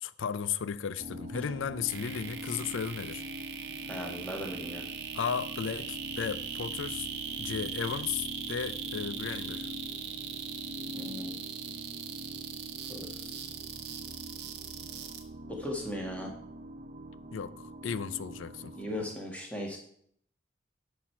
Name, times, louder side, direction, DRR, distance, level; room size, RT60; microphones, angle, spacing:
voice 1, 0.0-3.2 5.1-7.1 7.4-9.7 17.3-18.7, left 7 dB, 90° left, 0.4 m, -35 dB
sound 1, 1.0-19.1, right 1 dB, 40° right, 0.5 m, -44 dB
sound 2, 1.9-15.2, right 8 dB, 60° right, 1.0 m, -40 dB
voice 2, 3.9-4.9 10.9-11.3 12.9-13.5 15.5-16.3 18.8-19.8, left 1 dB, 5° left, 1.8 m, -38 dB
10.0 x 6.3 x 4.7 m
head